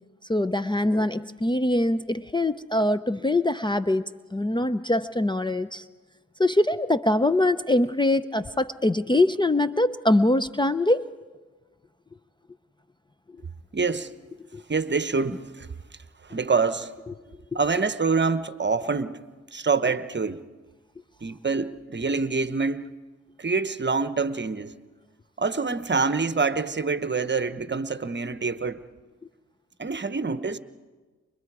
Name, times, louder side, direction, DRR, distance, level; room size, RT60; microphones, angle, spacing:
voice 1, 0.3-5.8 6.4-11.1 14.5-14.6 17.5-17.6, left 1 dB, 15° left, 0.6 m, -23 dB
voice 2, 13.7-14.1 14.7-15.7 16.2-16.9 17.5-19.2 19.5-20.4 21.2-22.9 23.4-24.7 25.4-28.8 29.8-30.6, right 4 dB, 35° right, 1.0 m, -26 dB
29.0 x 24.0 x 4.8 m
cardioid pair, 50°, 32 cm